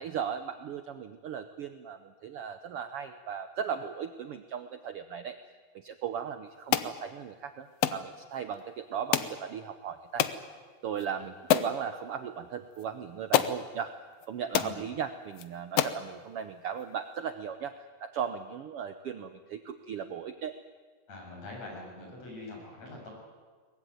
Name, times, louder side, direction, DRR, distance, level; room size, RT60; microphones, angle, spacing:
voice 1, 0.0-5.4 5.7-10.3 10.8-13.9 14.3-20.5, right 8 dB, 85° right, 9 dB, 1.2 m, -37 dB
sound 1, 6.7-6.9 7.8-8.0 9.1-9.4 10.2-10.4 11.0-11.1 11.5-11.8 12.8-12.9 13.3-13.6 14.2-14.3 14.5-14.8 15.4-15.5 15.8-16.0, left 11 dB, 70° left, 1.6 m, -26 dB
voice 2, 21.1-23.1, left 2 dB, 50° left, 0 dB, 7.9 m, -44 dB
23.0 x 20.0 x 9.4 m, 1.5 s
omnidirectional pair, 3.8 m